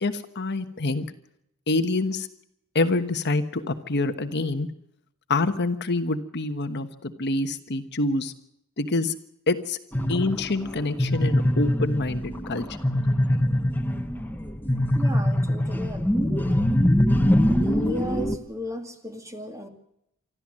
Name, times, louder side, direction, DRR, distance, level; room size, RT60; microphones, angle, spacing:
voice 1, 0.0-1.0 1.7-2.3 2.7-4.7 5.3-8.3 8.8-9.1 9.5-9.8 10.1-12.6 13.3-13.4, left 2 dB, 50° left, 9 dB, 1.2 m, -26 dB
sound 1, 9.9-18.4, left 1 dB, 10° left, 1.4 m, -23 dB
voice 2, 14.9-16.8 17.6-19.7, equal, 15° right, 6 dB, 2.2 m, -35 dB
25.0 x 14.0 x 7.5 m, 0.79 s
head